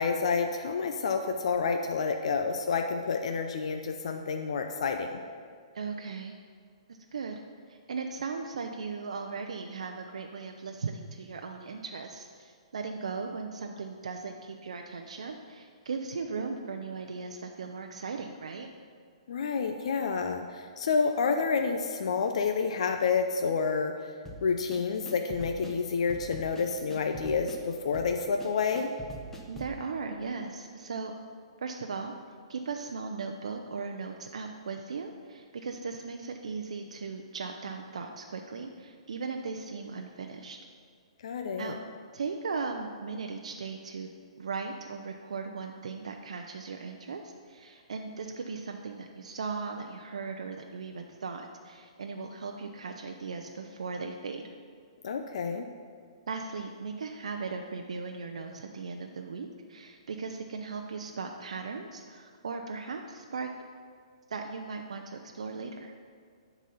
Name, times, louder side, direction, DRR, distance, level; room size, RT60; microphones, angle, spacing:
voice 1, 0.0-5.2 19.3-24.1 24.4-28.9 41.2-41.7 55.0-55.7, left 5 dB, 65° left, 5 dB, 0.5 m, -29 dB
voice 2, 5.7-6.4 7.1-7.4 7.7-18.7 29.5-31.1 31.6-32.1 32.5-40.6 41.6-41.8 42.1-44.1 44.4-54.4 56.3-63.5 64.3-65.9, right 4 dB, 80° right, 3 dB, 0.5 m, -37 dB
sound 1, 24.2-29.8, right 1 dB, 10° left, 0.9 m, -44 dB
10.0 x 4.0 x 5.5 m, 2.1 s
hypercardioid pair, 145°, 3 cm